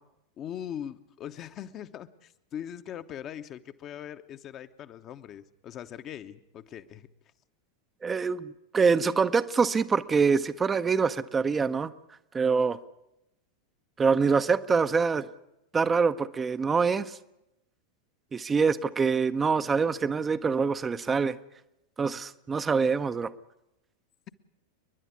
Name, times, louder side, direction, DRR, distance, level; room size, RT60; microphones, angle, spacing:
voice 1, 0.4-7.1, left 10 dB, 30° left, 10 dB, 0.9 m, -41 dB
voice 2, 8.0-11.9 12.3-12.8 14.0-15.3 15.7-17.2 18.3-21.4 22.0-23.3, right 5 dB, 15° right, 10 dB, 0.7 m, -25 dB
30.0 x 11.0 x 9.6 m, 0.87 s
figure-of-eight pair, 90°, 0 cm